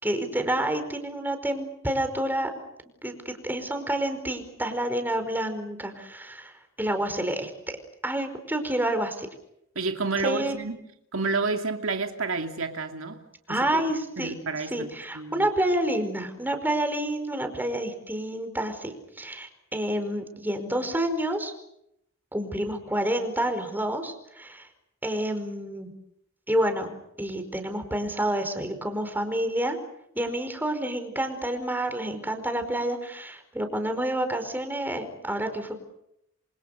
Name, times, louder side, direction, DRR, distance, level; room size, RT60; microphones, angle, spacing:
voice 1, 0.0-2.5 3.0-7.5 8.0-9.3 10.2-10.6 13.5-14.3 14.7-21.5 22.3-24.7 25.0-25.9 26.5-29.8 30.1-35.7, right 1 dB, 10° right, 7 dB, 4.9 m, -29 dB
voice 2, 9.8-10.8 11.1-13.2 13.5-13.8 14.2-14.9 15.1-15.5, right 3 dB, 80° right, 5 dB, 2.5 m, -29 dB
27.0 x 27.0 x 6.7 m, 0.78 s
head